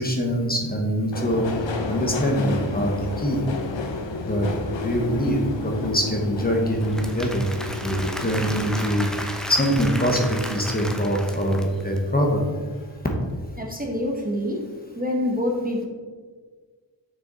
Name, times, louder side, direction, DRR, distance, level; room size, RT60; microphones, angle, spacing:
voice 1, 0.0-1.4 1.9-3.4 4.2-4.5 4.8-7.5 7.8-9.1 9.5-12.4, equal, 20° left, 0 dB, 1.1 m, -23 dB
Subway metro underground, 1.1-11.8 12.2-12.9 13.2-13.3, left 3 dB, 80° left, 0.9 m, -32 dB
Applause / Crowd, 6.6-12.0, equal, ahead, 0.7 m, -34 dB
voice 2, 13.6-14.6 14.9-15.9, left 1 dB, 20° right, 0 dB, 1.0 m, -26 dB
7.0 x 5.9 x 4.0 m, 1.5 s
wide cardioid pair, 120°, 44 cm